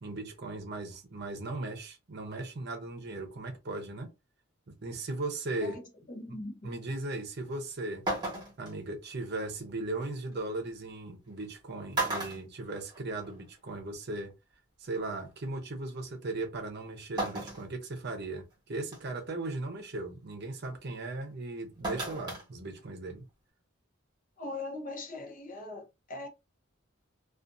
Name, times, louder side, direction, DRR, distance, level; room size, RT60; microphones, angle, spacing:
voice 1, 0.0-4.1 4.7-5.8 6.6-8.1 8.6-14.3 14.8-23.3, right 2 dB, 50° right, 0.7 m, -37 dB
voice 2, 5.6-6.7 24.4-26.3, left 2 dB, 40° left, 0.6 m, -41 dB
sound 1, 7.5-7.6 8.1-8.7 10.3-10.4 11.4-11.6 11.9-13.3 13.7-13.8 15.0-15.1 17.2-17.7 18.2-18.3 18.9-19.2 21.8-22.4 22.8-22.9, right 2 dB, 20° right, 1.1 m, -34 dB
2.5 x 2.4 x 2.5 m
head